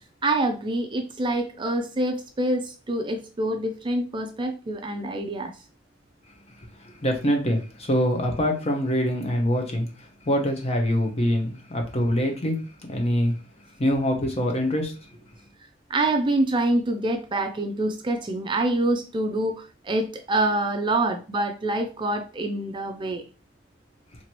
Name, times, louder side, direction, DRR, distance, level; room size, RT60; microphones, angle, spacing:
voice 1, 0.2-5.5 15.9-23.2, right 2 dB, 25° right, 0.4 m, -26 dB
voice 2, 6.8-13.3 13.8-15.2, equal, 30° left, 1.0 m, -25 dB
4.3 x 2.9 x 3.1 m
head